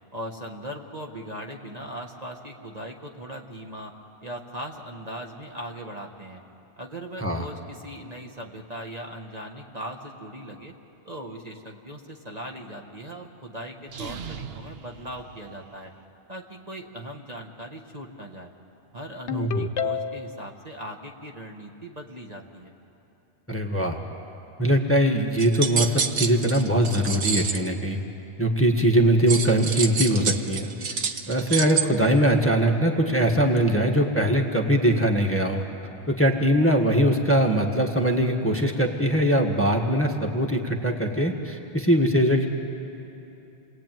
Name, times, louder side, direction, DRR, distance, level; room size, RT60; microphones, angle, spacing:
voice 1, 0.1-3.9 4.2-6.4 6.8-10.7 11.1-15.9 16.3-18.5 18.9-22.7, right 1 dB, 35° right, 1 dB, 1.6 m, -39 dB
sound 1, 13.8-16.0, right 6 dB, 55° right, 1.1 m, -40 dB
Ringtone, 19.3-20.4, left 7 dB, 70° left, 1.1 m, -29 dB
voice 2, 19.3-19.7 23.5-24.0 24.6-28.0 28.4-30.7 31.3-35.6 36.1-42.5, right 1 dB, 10° left, 1 dB, 1.6 m, -22 dB
sound 2, 25.4-27.7 29.3-31.8, right 6 dB, 75° right, 1.4 m, -27 dB
29.0 x 20.5 x 9.2 m, 2.9 s
omnidirectional pair, 1.2 m